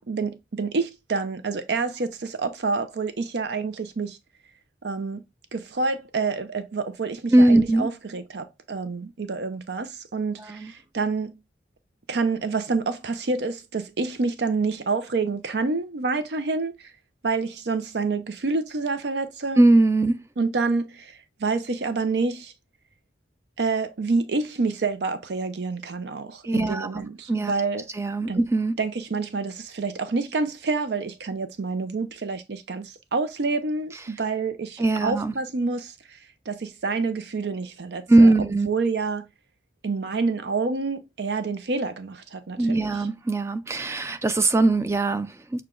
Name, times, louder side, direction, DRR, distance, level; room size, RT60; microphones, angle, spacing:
voice 1, 0.1-4.2 4.8-5.2 5.5-11.3 12.1-16.9 17.2-19.6 20.4-22.5 23.6-27.9 28.3-28.4 28.8-36.2 36.5-39.3 39.8-42.9, right 4 dB, 65° right, 0.5 m, -28 dB
voice 2, 7.3-7.9 10.4-10.7 19.6-20.2 26.4-27.5 28.0-28.7 34.8-35.3 38.1-38.7 42.6-45.6, right 2 dB, 15° right, 0.3 m, -20 dB
6.5 x 2.2 x 3.7 m
head